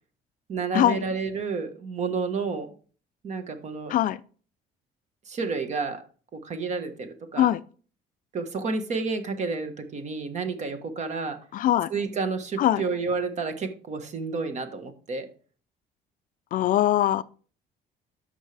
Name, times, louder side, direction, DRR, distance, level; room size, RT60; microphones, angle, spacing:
voice 1, 0.5-2.7 3.2-3.9 5.2-6.0 6.3-7.5 8.3-11.4 11.9-15.3, right 4 dB, 40° right, 1.4 m, -30 dB
voice 2, 3.9-4.2 7.4-7.6 11.5-11.9 12.6-12.8 16.5-17.2, left 12 dB, 50° left, 0.4 m, -22 dB
12.5 x 5.5 x 3.4 m
cardioid pair, 135°, 17 cm